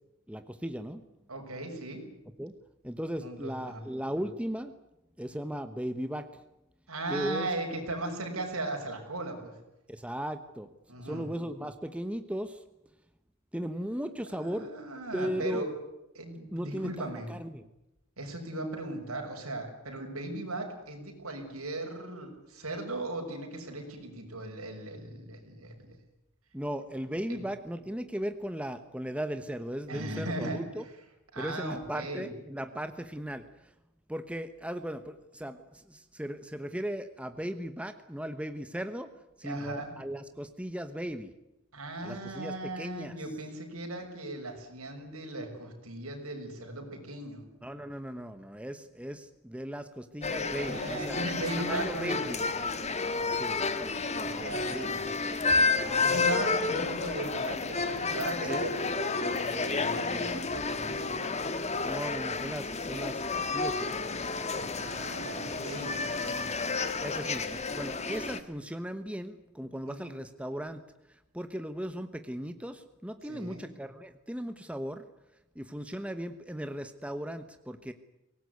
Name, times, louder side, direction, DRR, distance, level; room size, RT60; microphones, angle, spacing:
voice 1, 0.3-1.0 2.4-2.5 2.8-4.7 5.2-6.4 7.1-7.5 9.9-10.7 11.0-12.6 13.5-14.7 15.1-15.7 16.5-17.7 26.5-30.8 31.4-33.7 34.1-39.1 39.4-41.3 42.0-43.2 47.6-51.2 51.6-52.8 53.3-56.0 58.4-58.7 61.8-64.6 67.0-70.8 71.1-75.1 75.5-77.9, equal, 5° right, 9 dB, 1.1 m, -37 dB
voice 2, 1.3-2.0 3.2-3.8 6.9-9.5 10.9-11.2 14.3-15.7 16.1-17.3 18.2-25.9 27.3-27.4 29.9-30.6 31.3-32.3 39.4-39.9 41.7-47.5 50.5-52.2 54.2-54.9 56.0-61.4 64.8-66.5 69.9-70.2 73.3-73.6, right 2 dB, 75° right, 3 dB, 6.5 m, -38 dB
sound 1, 50.2-68.4, left 4 dB, 30° left, 1.5 m, -31 dB
24.0 x 19.0 x 9.5 m, 0.89 s
head